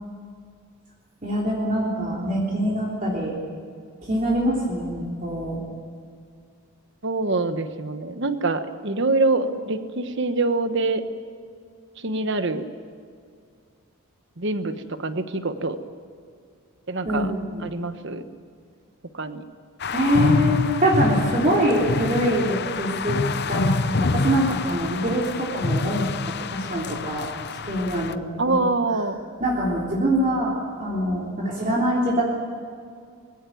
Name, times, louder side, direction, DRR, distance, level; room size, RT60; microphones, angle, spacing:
voice 1, 1.2-3.3 4.1-5.6 17.1-17.7 19.9-23.2 23.5-26.1 26.5-27.3 27.6-28.2 28.5-28.6 29.4-30.5 30.8-32.2, equal, 35° right, -5 dB, 3.4 m, -24 dB
voice 2, 7.0-11.0 12.0-12.6 14.4-14.7 15.0-15.8 16.9-17.3 17.6-18.2 19.1-19.4 28.4-29.2, right 3 dB, 55° right, 9 dB, 1.3 m, -25 dB
sound 1, 19.8-28.1, left 3 dB, 45° left, 0.7 m, -26 dB
22.5 x 16.5 x 9.3 m, 2.2 s
head